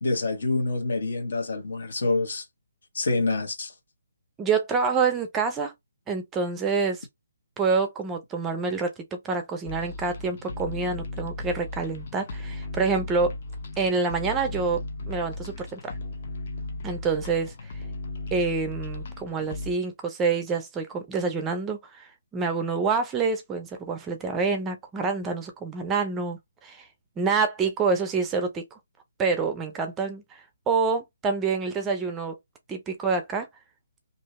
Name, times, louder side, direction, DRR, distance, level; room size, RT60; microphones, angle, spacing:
voice 1, 0.0-2.4 2.9-3.7, left 3 dB, 70° left, 1.2 m, -26 dB
voice 2, 4.4-5.7 6.1-7.1 7.6-13.3 13.8-14.8 15.1-16.0 16.8-17.5 18.3-26.9 27.2-28.8 29.2-32.3 32.7-33.5, right 4 dB, 10° right, 0.5 m, -27 dB
sound 1, 9.7-19.7, left 2 dB, 45° left, 0.7 m, -36 dB
2.7 x 2.7 x 3.0 m
hypercardioid pair, 165°, 0 cm